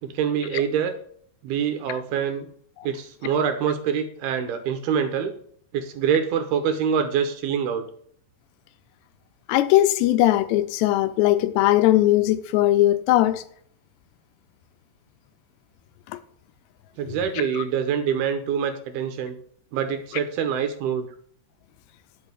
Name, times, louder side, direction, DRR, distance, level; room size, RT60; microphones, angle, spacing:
voice 1, 0.0-0.9 1.4-2.5 2.8-5.3 5.7-7.8 17.0-19.4 19.7-21.1, right 7 dB, 75° right, 2.6 m, -25 dB
voice 2, 9.5-13.4 17.4-17.5, left 14 dB, 80° left, 2.6 m, -19 dB
11.5 x 5.6 x 8.1 m
omnidirectional pair, 5.1 m